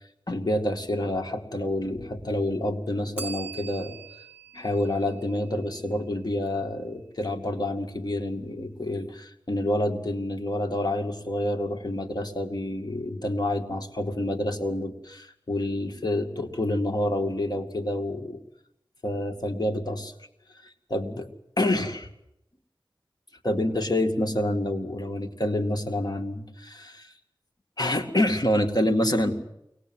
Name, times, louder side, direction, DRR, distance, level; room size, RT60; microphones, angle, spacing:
voice 1, 0.3-4.0 4.5-18.4 19.0-20.1 20.6-21.3 21.6-22.1 23.4-27.1 27.8-29.4, left 1 dB, 50° left, 4 dB, 2.2 m, -28 dB
Bell, 3.2-6.0, right 4 dB, 15° right, 4.1 m, -42 dB
23.0 x 19.0 x 7.7 m, 0.83 s
wide cardioid pair, 45°, 9 cm